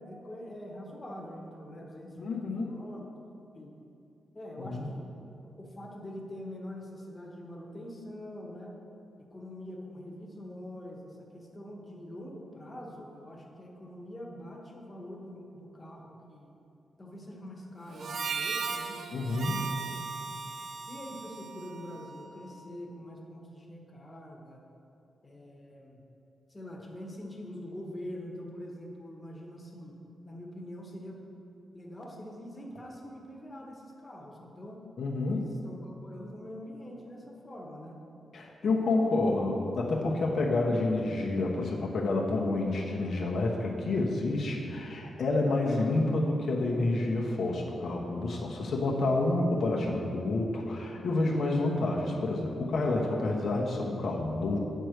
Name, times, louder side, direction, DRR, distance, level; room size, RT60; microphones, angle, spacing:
voice 1, 0.0-3.0 3.5-3.7 4.3-5.1 5.6-8.7 9.3-16.5 17.0-19.0 20.3-20.5 20.8-24.6 25.2-26.0 26.5-29.9 30.2-31.2 31.7-34.8 35.3-38.0 38.6-39.3, left 1 dB, 20° left, -1 dB, 1.5 m, -44 dB
voice 2, 2.2-2.8 4.6-4.9 19.1-19.7 35.0-35.5 38.3-54.6, left 2 dB, 60° left, -2 dB, 1.0 m, -29 dB
Harmonica, 17.9-22.5, right 5 dB, 65° right, 0.5 m, -37 dB
8.9 x 4.6 x 6.5 m, 2.8 s
cardioid pair, 90°, 0 cm